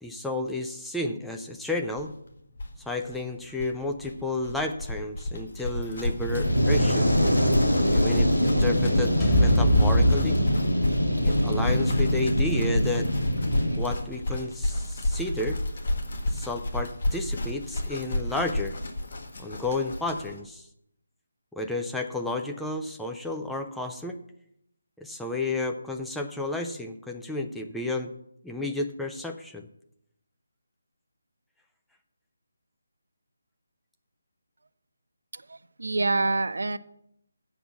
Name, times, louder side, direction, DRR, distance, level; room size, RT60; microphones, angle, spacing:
voice 1, 0.0-2.1 2.9-7.1 7.9-10.4 11.2-13.1 13.8-15.6 16.3-18.7 19.4-20.7 21.5-24.2 25.0-28.1 28.4-29.7, left 2 dB, ahead, 3 dB, 0.5 m, -32 dB
sound 1, 2.0-2.1 2.3-2.4 2.5-20.4, left 1 dB, 50° left, 1.5 m, -30 dB
Fire, 6.1-13.8, equal, 90° left, 2.2 m, -24 dB
sound 2, 9.2-13.4, equal, 20° left, 1.8 m, -26 dB
voice 2, 35.3-36.8, right 3 dB, 65° right, 14 dB, 0.4 m, -27 dB
7.9 x 6.0 x 7.1 m, 0.75 s
figure-of-eight pair, 150°, 0 cm